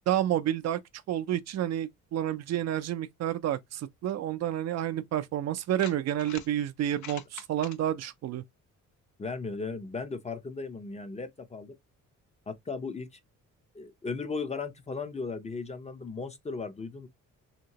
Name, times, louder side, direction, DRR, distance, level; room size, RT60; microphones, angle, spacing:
voice 1, 0.1-0.8 1.1-8.4, right 11 dB, 60° right, 0.4 m, -30 dB
sound 1, 4.8-4.9 5.6-6.5 6.9-7.8, left 10 dB, 70° left, 0.5 m, -44 dB
voice 2, 9.2-11.7 12.5-13.2 13.7-17.1, left 4 dB, 20° left, 0.5 m, -36 dB
2.9 x 2.8 x 2.8 m
cardioid pair, 90°, 30 cm